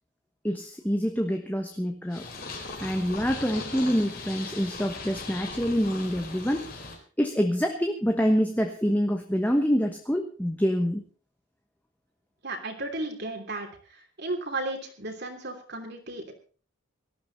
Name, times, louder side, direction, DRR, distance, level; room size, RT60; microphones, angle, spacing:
voice 1, 0.4-2.3 2.8-6.7 7.2-11.0, equal, 10° left, 4 dB, 1.2 m, -26 dB
Purr, 2.1-7.0, left 3 dB, 45° left, 4.1 m, -39 dB
voice 2, 12.4-13.7 14.2-16.3, right 2 dB, 50° right, 3 dB, 3.1 m, -34 dB
18.5 x 13.5 x 4.1 m, 0.38 s
head